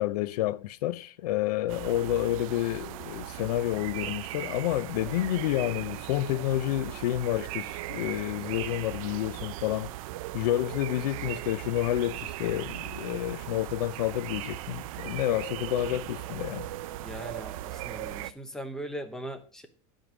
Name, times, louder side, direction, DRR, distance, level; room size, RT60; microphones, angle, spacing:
voice 1, 0.0-9.9 10.3-16.7, left 14 dB, 85° left, 0.5 m, -29 dB
sound 1, 1.7-18.3, right 15 dB, 60° right, 0.6 m, -38 dB
voice 2, 17.0-19.7, right 1 dB, 5° left, 0.8 m, -40 dB
11.0 x 5.2 x 6.1 m
supercardioid pair, 160°, 20 cm